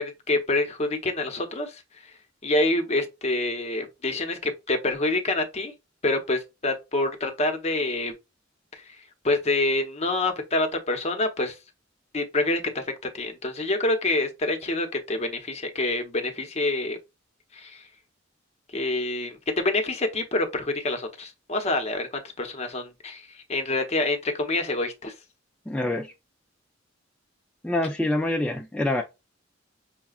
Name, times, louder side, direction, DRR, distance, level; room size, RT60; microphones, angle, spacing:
voice 1, 0.0-1.8 2.4-5.7 6.0-8.1 8.7-8.8 9.2-11.5 12.1-12.8 13.1-17.0 17.5-17.8 18.7-25.1, left 2 dB, 35° left, 0.8 m, -27 dB
voice 2, 25.7-26.1 27.6-29.0, left 1 dB, 5° left, 0.3 m, -26 dB
5.7 x 2.3 x 2.3 m
head